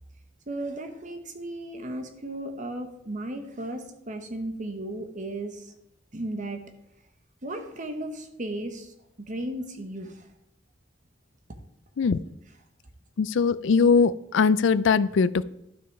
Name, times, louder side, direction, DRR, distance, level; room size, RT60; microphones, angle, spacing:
voice 1, 0.5-5.7 6.1-6.6 7.4-10.3, right 1 dB, 40° right, 6 dB, 1.2 m, -35 dB
voice 2, 13.2-15.4, left 5 dB, 70° left, 17 dB, 0.4 m, -21 dB
11.5 x 6.2 x 4.7 m, 0.81 s
head